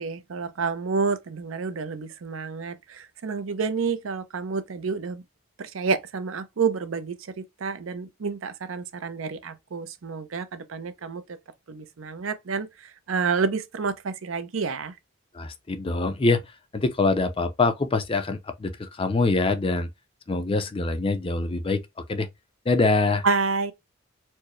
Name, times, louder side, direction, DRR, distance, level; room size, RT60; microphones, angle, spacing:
voice 1, 0.0-5.2 5.6-11.4 11.7-14.9 23.2-23.7, right 5 dB, 75° right, 0.6 m, -29 dB
voice 2, 15.3-19.9 20.3-21.8 22.1-22.3 22.7-23.2, left 3 dB, 25° left, 0.5 m, -24 dB
4.4 x 2.1 x 3.0 m
head